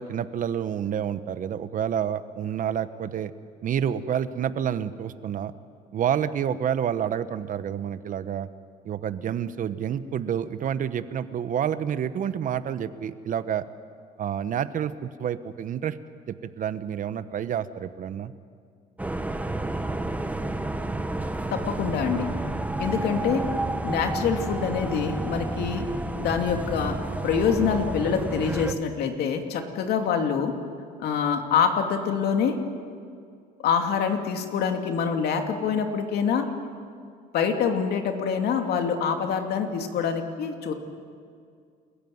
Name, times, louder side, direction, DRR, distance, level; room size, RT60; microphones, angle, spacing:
voice 1, 0.0-3.3 3.6-5.5 5.9-8.5 8.8-13.6 14.2-16.0 16.3-18.3, right 9 dB, 50° right, 13 dB, 1.0 m, -29 dB
sound 1, 19.0-28.7, right 2 dB, 10° right, 1.3 m, -30 dB
voice 2, 21.5-22.3 22.8-23.4 23.8-25.8 26.2-27.0 27.2-30.5 31.0-32.6 33.6-36.4 37.3-40.7, left 6 dB, 70° left, 4 dB, 2.7 m, -25 dB
28.5 x 15.0 x 9.5 m, 2.2 s
cardioid pair, 110°, 17 cm